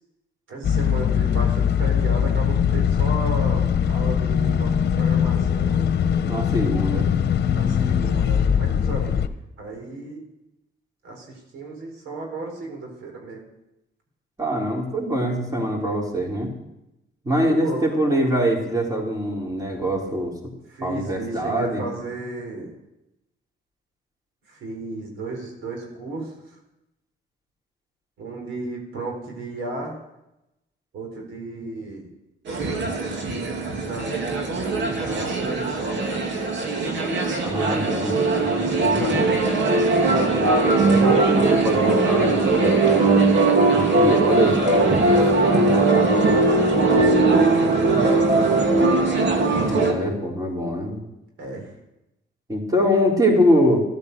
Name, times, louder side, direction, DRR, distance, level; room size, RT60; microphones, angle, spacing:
voice 1, 0.5-5.9 7.5-9.1 9.6-10.2 11.0-13.4 17.4-17.8 18.1-18.2 20.7-22.8 24.5-26.3 28.2-30.0 30.9-32.1 33.8-36.3 39.9-40.4 45.4-48.6 51.4-51.7, right 2 dB, 80° right, 1 dB, 4.3 m, -33 dB
sound 1, 0.6-9.3, left 8 dB, 55° left, 1.1 m, -21 dB
voice 2, 6.3-7.1 14.4-16.5 17.2-20.3 20.8-21.9 37.4-39.3 40.2-43.3 43.7-45.7 49.7-51.0 52.5-53.8, equal, 20° right, -1 dB, 3.8 m, -24 dB
sound 2, 32.5-49.9, right 3 dB, 65° right, 2.7 m, -20 dB
13.5 x 12.0 x 6.7 m, 0.90 s
cardioid pair, 90°, 20 cm